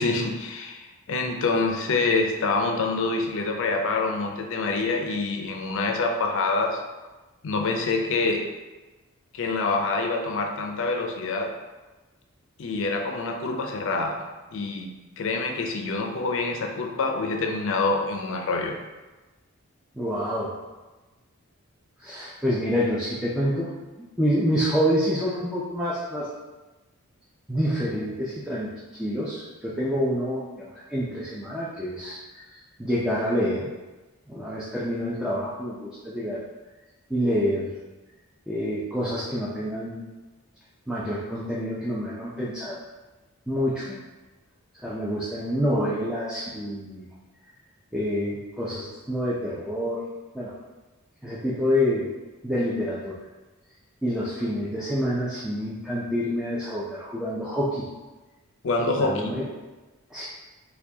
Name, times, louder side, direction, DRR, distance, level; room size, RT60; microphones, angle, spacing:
voice 1, 0.0-6.8 7.4-8.5 9.3-11.5 12.6-14.2 14.5-18.8 58.6-59.4, left 3 dB, 65° left, 3 dB, 0.5 m, -26 dB
voice 2, 20.0-20.5 22.0-23.7 24.0-26.3 27.5-33.7 34.3-36.4 37.1-37.7 38.5-40.0 40.9-42.8 43.5-44.0 44.8-47.1 47.9-50.0 50.3-50.5 51.2-52.1 52.4-53.2 54.0-57.9 59.0-59.5 60.1-60.2, equal, 5° right, -7 dB, 0.4 m, -27 dB
4.4 x 2.3 x 2.7 m, 1.2 s
head